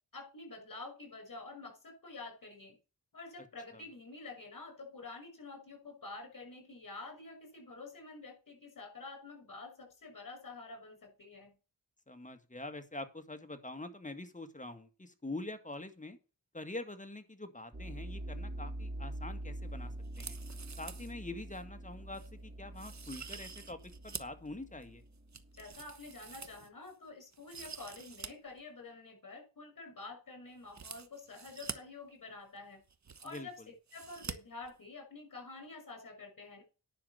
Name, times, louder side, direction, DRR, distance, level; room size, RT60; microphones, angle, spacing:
voice 1, 0.1-2.8 3.1-11.5 25.5-32.8 33.2-33.6 33.9-36.6, left 3 dB, 60° left, 6.2 m, -48 dB
voice 2, 12.1-16.2 16.5-20.4 20.8-23.8 24.0-25.0 33.2-33.5, left 2 dB, 20° left, 2.0 m, -45 dB
sound 1, 17.7-26.4, right 1 dB, 25° right, 1.8 m, -45 dB
sound 2, 20.0-21.1 21.5-21.6 22.1-22.3 22.8-24.4 24.8-26.9 27.3-28.3 28.6-28.7 30.7-31.8 32.6-32.7 32.8-33.6 33.9-34.3 34.6-34.7, right 6 dB, 45° right, 1.2 m, -47 dB
10.5 x 5.9 x 6.9 m
cardioid pair, 60°, 37 cm